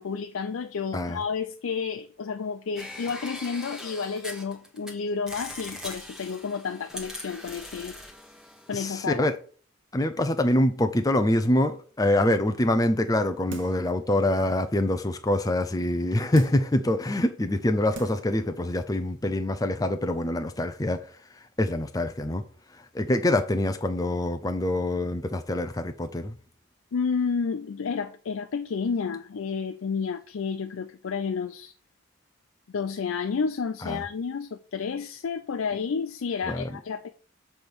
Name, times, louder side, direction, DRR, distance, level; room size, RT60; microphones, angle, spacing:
voice 1, 0.0-8.0 8.7-9.3 26.9-31.7 32.7-37.2, left 5 dB, 75° left, 0.4 m, -31 dB
sound 1, 2.8-4.9 5.3-9.2, left 1 dB, 5° right, 1.1 m, -41 dB
voice 2, 8.7-9.4 9.9-22.4 22.7-26.4 33.8-34.0 36.4-36.8, left 1 dB, 15° left, 0.5 m, -25 dB
sound 2, 13.5-13.9 14.4-14.5 16.3-16.8 17.5-17.6 17.9-18.4 18.7-18.8, right 3 dB, 60° right, 1.1 m, -42 dB
7.2 x 3.3 x 6.0 m
head